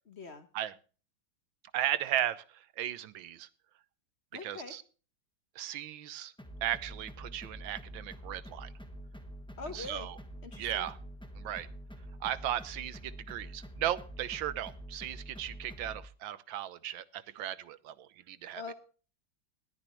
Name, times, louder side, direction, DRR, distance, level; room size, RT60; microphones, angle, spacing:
voice 1, 0.1-0.5 4.3-4.7 9.6-10.1 10.4-10.9 18.6-18.7, left 4 dB, 40° left, 9 dB, 1.2 m, -43 dB
voice 2, 1.7-3.5 4.4-4.8 5.6-6.3 6.6-8.7 9.7-10.2 10.5-11.0 11.4-11.7 12.2-18.6, right 12 dB, 85° right, 16 dB, 1.6 m, -36 dB
sound 1, 6.4-16.1, right 1 dB, 5° left, 1.2 m, -47 dB
20.0 x 10.5 x 3.1 m, 0.37 s
omnidirectional pair, 2.1 m